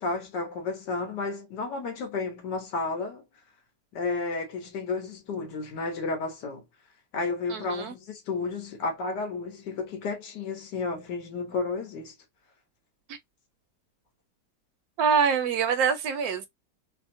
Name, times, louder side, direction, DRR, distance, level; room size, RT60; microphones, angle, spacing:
voice 1, 0.0-3.2 3.9-6.6 7.1-12.1, left 3 dB, 85° left, 1.6 m, -32 dB
voice 2, 7.5-7.9 13.1-13.2 15.0-16.5, right 6 dB, 70° right, 1.0 m, -25 dB
3.4 x 2.0 x 2.6 m
omnidirectional pair, 1.8 m